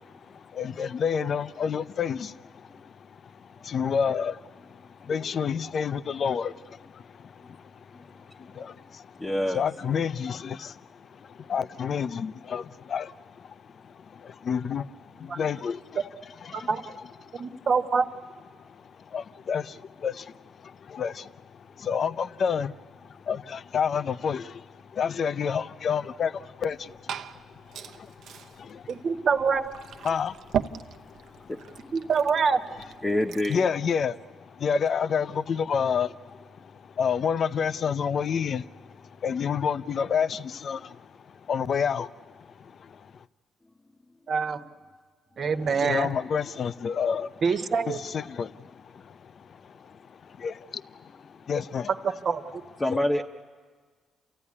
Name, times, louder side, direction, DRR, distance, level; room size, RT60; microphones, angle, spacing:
voice 1, 0.6-2.3 3.7-4.3 5.1-6.5 9.5-10.6 11.5-12.6 12.9-13.1 14.5-14.8 15.4-15.8 19.1-19.6 20.0-20.1 20.9-21.1 21.9-22.7 23.3-24.4 25.0-26.3 26.6-26.8 30.0-30.3 33.5-34.1 34.6-36.1 37.0-38.6 39.2-40.8 41.5-42.1 45.8-47.3 47.9-48.5 50.4-50.5 51.5-51.9 52.9-53.0, left 7 dB, 55° left, 0.6 m, -27 dB
voice 2, 9.2-9.6 31.5-31.6 33.0-33.6 52.8-53.2, left 1 dB, 15° left, 1.0 m, -26 dB
voice 3, 17.3-18.1 28.9-29.7 31.9-32.6 44.3-44.6 45.4-46.1 47.4-48.0 52.2-52.4, right 5 dB, 50° right, 1.4 m, -25 dB
Liquid, 26.6-33.7, right 8 dB, 75° right, 0.9 m, -38 dB
28.5 x 15.0 x 9.8 m
cardioid pair, 90°, 0 cm